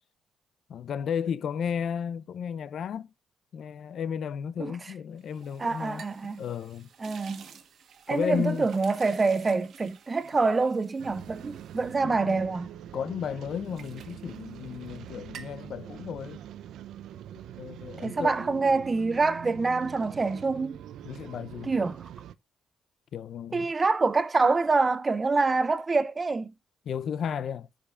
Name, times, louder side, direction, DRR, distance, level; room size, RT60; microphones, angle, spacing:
voice 1, 0.7-3.1 3.5-6.0 6.4-6.9 8.1-8.7 12.0-12.4 12.9-16.4 17.6-18.6 21.0-21.7 23.1-23.7 26.9-27.7, left 7 dB, 65° left, 0.5 m, -33 dB
sound 1, 5.2-12.9 13.3-15.0 15.2-15.7, right 7 dB, 60° right, 1.2 m, -51 dB
voice 2, 5.6-6.4 7.0-7.5 8.1-12.7 18.0-20.8 21.6-22.0 23.5-26.5, right 3 dB, 30° right, 0.6 m, -26 dB
sound 2, 11.0-22.3, right 10 dB, 80° right, 0.5 m, -44 dB
13.5 x 5.1 x 2.4 m
cardioid pair, 90°, 0 cm